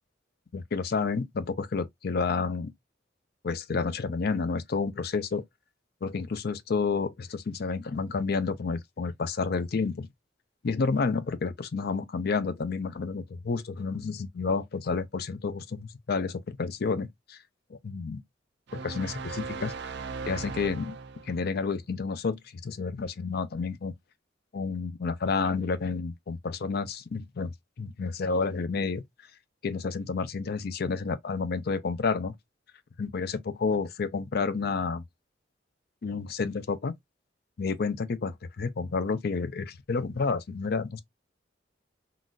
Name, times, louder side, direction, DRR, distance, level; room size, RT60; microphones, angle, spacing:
voice 1, 0.5-2.7 3.4-5.4 6.0-10.1 10.6-17.4 17.8-18.2 18.7-19.9 20.3-20.9 21.3-22.4 22.6-23.9 24.5-27.5 27.8-29.0 29.6-32.4 33.0-35.0 36.0-36.9 37.6-41.0, left 4 dB, 55° left, 0.5 m, -30 dB
sound 1, 18.7-21.5, right 4 dB, 65° right, 0.5 m, -38 dB
3.9 x 2.5 x 2.3 m
head